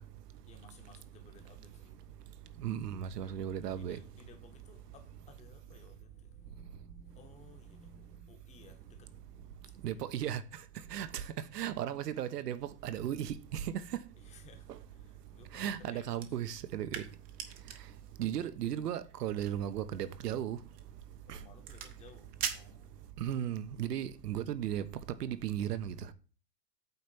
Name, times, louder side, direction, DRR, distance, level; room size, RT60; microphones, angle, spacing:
voice 1, 0.2-2.4 3.2-10.1 14.2-16.1 17.6-18.0 21.2-23.0, left 5 dB, 15° left, 1.1 m, -59 dB
voice 2, 2.6-4.0 9.8-10.4 10.9-11.2 11.5-13.7 15.5-17.0 18.2-20.6 21.3-21.4 23.2-24.9 25.2-25.9, right 10 dB, 75° right, 1.2 m, -35 dB
sound 1, 16.2-23.5, right 8 dB, 20° right, 0.8 m, -45 dB
8.6 x 4.2 x 6.9 m
hypercardioid pair, 150°, 48 cm